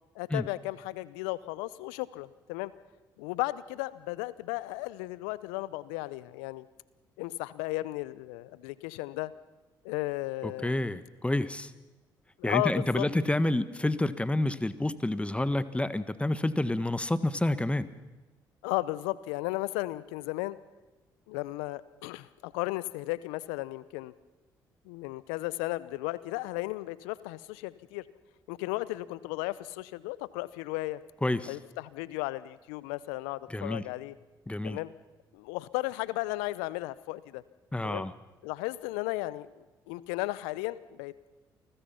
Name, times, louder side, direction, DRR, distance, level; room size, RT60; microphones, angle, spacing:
voice 1, 0.1-2.7 3.2-6.7 7.2-9.3 9.8-10.8 12.4-13.1 18.6-20.6 21.3-24.1 24.8-28.0 28.5-31.0 31.5-34.1 34.6-34.9 35.3-37.4 37.8-38.1 38.4-41.1, left 19 dB, 75° left, 18 dB, 0.8 m, -35 dB
voice 2, 10.4-11.7 12.4-17.9 31.2-31.5 33.5-33.8 34.5-34.8 37.7-38.1, left 1 dB, 10° left, 14 dB, 1.5 m, -29 dB
29.5 x 20.0 x 5.8 m, 1.2 s
hypercardioid pair, 50°, 10 cm